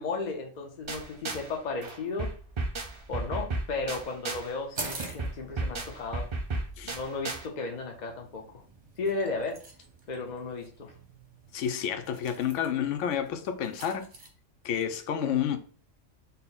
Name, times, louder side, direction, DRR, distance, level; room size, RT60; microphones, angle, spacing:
voice 1, 0.0-2.3 3.1-6.3 6.8-8.4 9.0-9.6 10.1-10.9, left 3 dB, 50° left, 0.5 m, -34 dB
sound 1, 0.9-1.5 1.8-4.5 4.8-7.5, right 2 dB, 55° right, 0.3 m, -34 dB
sound 2, 4.7-14.3, right 3 dB, 35° right, 0.7 m, -46 dB
voice 2, 11.5-14.1 14.6-15.6, left 9 dB, 75° left, 0.9 m, -30 dB
4.1 x 2.0 x 3.9 m
omnidirectional pair, 1.3 m